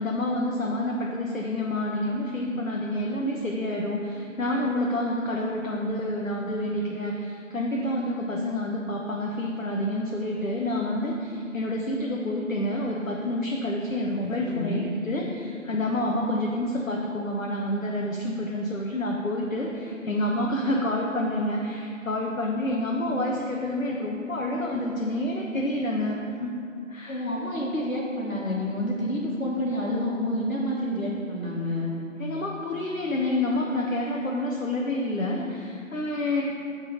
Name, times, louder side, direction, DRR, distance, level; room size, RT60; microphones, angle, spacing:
voice 1, 0.0-26.5 26.9-27.3 32.2-36.4, left 1 dB, 75° left, -1 dB, 1.0 m, -28 dB
voice 2, 14.4-14.8 27.1-31.9, left 1 dB, 90° left, -4 dB, 1.6 m, -28 dB
8.2 x 3.8 x 6.3 m, 2.6 s
figure-of-eight pair, 150°, 40 cm